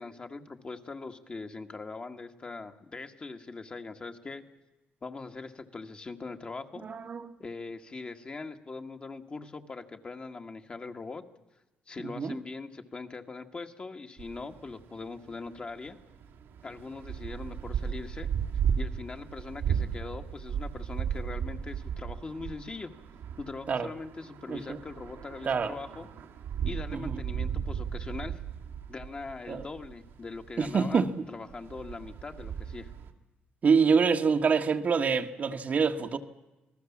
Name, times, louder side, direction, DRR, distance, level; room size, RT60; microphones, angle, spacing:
voice 1, 0.0-4.5 5.0-6.9 7.4-11.2 11.9-16.0 16.6-18.3 18.8-22.9 23.4-26.1 26.6-28.4 28.9-32.9, left 3 dB, 30° left, 1.7 m, -41 dB
voice 2, 6.8-7.2 12.2-12.4 23.7-23.9 24.5-24.8 25.4-25.7 26.9-27.1 29.5-29.7 30.6-31.1 33.6-36.2, right 5 dB, 45° right, 1.3 m, -26 dB
sound 1, 14.2-30.9 31.2-33.1, right 8 dB, 85° right, 2.2 m, -36 dB
27.5 x 19.5 x 7.3 m
cardioid pair, 115°, 4 cm